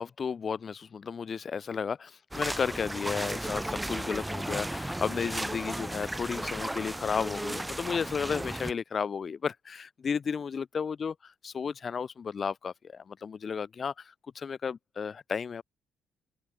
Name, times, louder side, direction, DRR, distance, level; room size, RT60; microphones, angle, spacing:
voice 1, 0.0-11.1 11.4-15.6, left 6 dB, 45° left, 4.6 m, -33 dB
sound 1, 2.3-8.7, right 1 dB, 10° right, 3.3 m, -35 dB
open air
cardioid pair, 90°, 0 cm